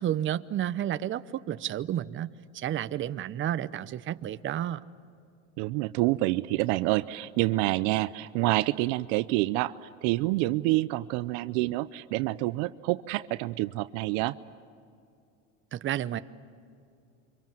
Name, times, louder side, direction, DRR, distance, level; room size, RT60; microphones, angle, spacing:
voice 1, 0.0-4.8 15.7-16.2, right 11 dB, 35° right, 12 dB, 0.8 m, -31 dB
voice 2, 5.6-14.3, right 19 dB, 60° right, 14 dB, 0.7 m, -27 dB
28.5 x 25.0 x 7.6 m, 2.5 s
supercardioid pair, 110°, 36 cm